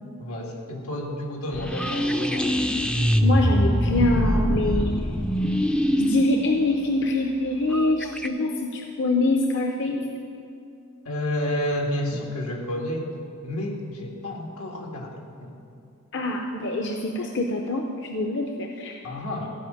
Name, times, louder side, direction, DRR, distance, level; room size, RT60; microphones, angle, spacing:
voice 1, 0.2-2.7 11.1-13.1 13.4-15.5 19.0-19.5, left 1 dB, 90° left, 0 dB, 2.0 m, -30 dB
sound 1, 1.5-8.3, equal, 5° left, 0.3 m, -24 dB
voice 2, 3.2-4.9 6.0-10.1 16.1-19.0, left 2 dB, 55° left, 2 dB, 0.7 m, -25 dB
15.0 x 5.3 x 8.6 m, 2.6 s
head